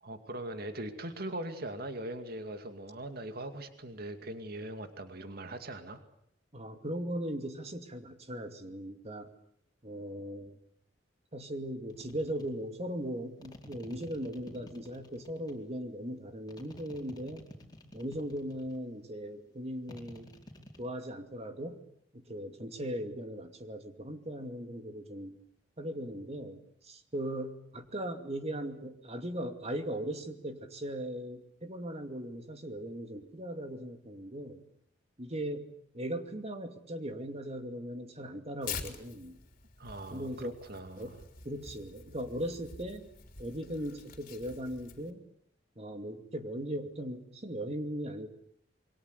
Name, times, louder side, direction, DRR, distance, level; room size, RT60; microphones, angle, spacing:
voice 1, 0.0-6.0 39.8-41.2, right 1 dB, 55° right, 7 dB, 2.4 m, -41 dB
voice 2, 6.5-9.3 9.8-10.6 11.3-17.5 17.9-20.3 20.8-21.8 22.1-25.4 25.8-34.6 35.2-39.4 40.1-40.6 41.0-41.2 41.4-43.1 43.4-45.2 45.8-48.3, equal, 35° right, 7 dB, 2.5 m, -38 dB
sound 1, 11.9-12.5 13.4-15.6 16.5-18.8 19.9-20.9, left 1 dB, 20° left, 4.4 m, -51 dB
Tearing, 38.6-45.1, left 6 dB, 50° left, 3.6 m, -46 dB
27.5 x 23.5 x 8.3 m, 0.68 s
head